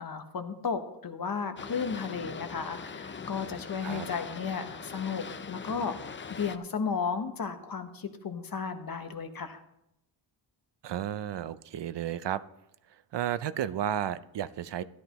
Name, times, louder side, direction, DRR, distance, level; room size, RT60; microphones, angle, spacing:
voice 1, 0.0-6.0 6.3-9.6, left 5 dB, 45° left, 8 dB, 1.1 m, -34 dB
Boat Water vehicle, 1.6-6.6, left 5 dB, 25° left, 0.4 m, -41 dB
voice 2, 10.8-12.4 13.1-14.8, right 10 dB, 65° right, 15 dB, 0.5 m, -32 dB
13.5 x 11.5 x 3.0 m, 0.82 s
wide cardioid pair, 140°, 47 cm